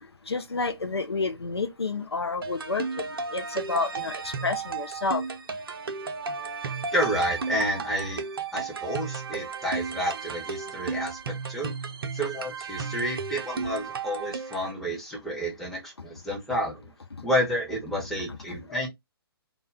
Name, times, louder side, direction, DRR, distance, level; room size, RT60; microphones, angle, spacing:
voice 1, 0.0-5.2 17.1-17.3 18.3-18.4 18.7-18.8, left 3 dB, 85° left, 0.4 m, -30 dB
sound 1, 2.4-14.7, right 5 dB, 65° right, 0.5 m, -34 dB
voice 2, 6.9-8.2 8.5-11.2 11.5-11.7 12.1-16.9 17.2-18.9, equal, ahead, 0.8 m, -30 dB
2.1 x 2.1 x 3.2 m
figure-of-eight pair, 125°, 13 cm